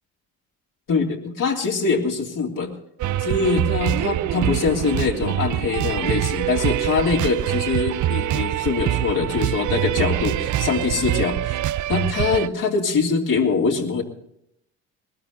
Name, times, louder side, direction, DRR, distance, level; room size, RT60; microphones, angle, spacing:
voice 1, 0.9-2.7 3.2-11.6 11.9-14.0, left 4 dB, 50° left, -1 dB, 3.2 m, -23 dB
sound 1, 3.0-12.5, right 14 dB, 50° right, 0.5 m, -24 dB
20.5 x 12.5 x 4.0 m, 0.75 s
hypercardioid pair, 60°, 40 cm